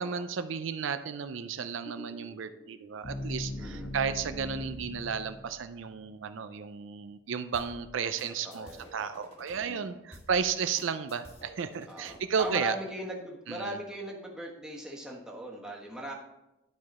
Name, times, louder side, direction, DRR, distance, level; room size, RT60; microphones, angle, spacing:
voice 1, 0.0-12.8 13.5-13.7, right 6 dB, 80° right, 10 dB, 0.5 m, -33 dB
sound 1, 1.9-5.9, left 1 dB, 65° left, 1.2 m, -40 dB
voice 2, 3.6-3.9 8.4-8.8 9.7-10.0 11.9-16.1, equal, 5° right, -2 dB, 1.2 m, -39 dB
sound 2, 7.5-9.6 10.1-12.6, left 1 dB, 30° left, 1.6 m, -51 dB
11.0 x 4.8 x 4.2 m, 0.94 s
head